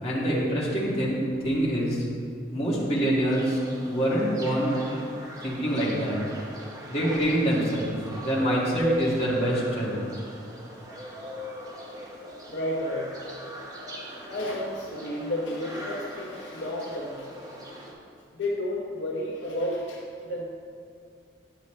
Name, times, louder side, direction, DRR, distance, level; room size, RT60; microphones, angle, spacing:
voice 1, 0.0-1.2 1.4-2.0 2.5-3.6 3.8-4.7 5.4-6.2 6.9-7.9 8.2-10.0, equal, 35° left, -8 dB, 1.8 m, -25 dB
sound 1, 3.2-17.9, right 1 dB, 20° right, 0.9 m, -39 dB
voice 2, 12.5-13.2 14.3-17.6 18.3-20.4, left 1 dB, 75° left, -3 dB, 1.0 m, -32 dB
10.0 x 6.6 x 3.2 m, 2.4 s
head